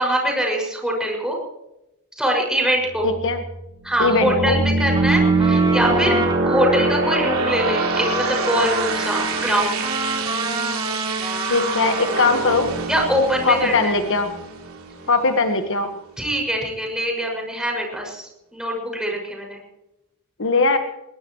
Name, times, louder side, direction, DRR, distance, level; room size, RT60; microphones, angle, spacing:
voice 1, 0.0-1.4 2.2-3.1 3.8-6.1 6.4-9.9 12.9-13.9 16.2-19.6, equal, 5° right, 0 dB, 6.2 m, -23 dB
sound 1, 2.9-15.5, right 3 dB, 65° right, 3.3 m, -24 dB
voice 2, 3.0-3.4 4.0-4.6 11.4-12.7 13.4-14.3 15.1-15.9 20.4-20.8, left 3 dB, 60° left, 6 dB, 1.5 m, -20 dB
Trumpet, 4.9-12.8, right 2 dB, 20° right, 4.0 m, -30 dB
21.0 x 21.0 x 3.2 m, 0.91 s
head